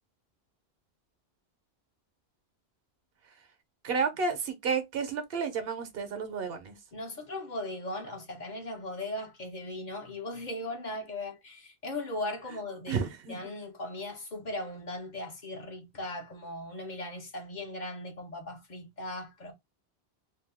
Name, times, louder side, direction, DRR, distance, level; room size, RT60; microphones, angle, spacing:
voice 1, 3.8-6.8 12.9-13.5, right 5 dB, 70° right, 0.9 m, -31 dB
voice 2, 6.9-13.0 13.3-19.5, left 1 dB, 50° left, 0.8 m, -38 dB
2.6 x 2.3 x 3.4 m
omnidirectional pair, 1.1 m